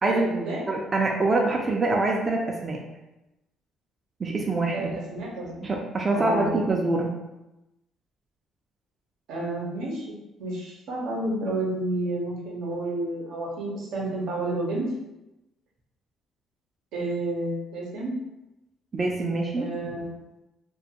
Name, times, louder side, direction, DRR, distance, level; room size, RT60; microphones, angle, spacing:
voice 1, 0.0-0.6 4.7-5.6 6.1-6.5 9.3-14.9 16.9-18.2 19.6-20.1, right 2 dB, 80° right, -2 dB, 0.7 m, -30 dB
voice 2, 0.7-2.8 4.2-4.9 5.6-7.1 18.9-19.7, right 2 dB, 30° right, 1 dB, 0.3 m, -25 dB
2.4 x 2.2 x 2.7 m, 0.97 s
cardioid pair, 115°, 0 cm